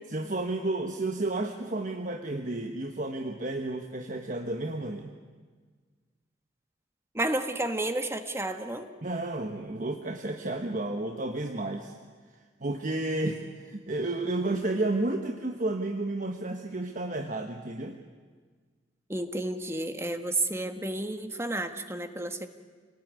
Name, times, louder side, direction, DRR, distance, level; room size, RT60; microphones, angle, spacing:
voice 1, 0.1-5.1 9.0-12.0 12.6-18.0, right 2 dB, 45° right, 4 dB, 1.3 m, -31 dB
voice 2, 7.1-8.9 19.1-22.5, right 2 dB, 15° right, 7 dB, 1.4 m, -31 dB
27.0 x 19.0 x 9.7 m, 1.5 s
head